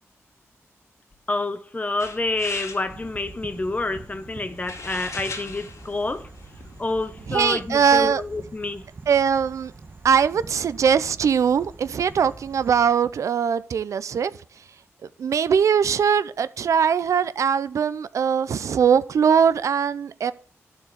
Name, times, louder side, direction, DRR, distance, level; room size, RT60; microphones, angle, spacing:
voice 1, 1.3-6.3 6.8-8.8, left 2 dB, 30° left, 1.1 m, -28 dB
sound 1, 2.0-7.4, left 4 dB, 75° left, 2.2 m, -40 dB
sound 2, 2.9-12.9, right 3 dB, 45° right, 1.2 m, -44 dB
voice 2, 7.3-8.2 9.1-9.7 10.0-14.3 15.2-20.3, right 7 dB, 80° right, 0.6 m, -21 dB
12.0 x 4.7 x 7.9 m
wide cardioid pair, 85°, 5 cm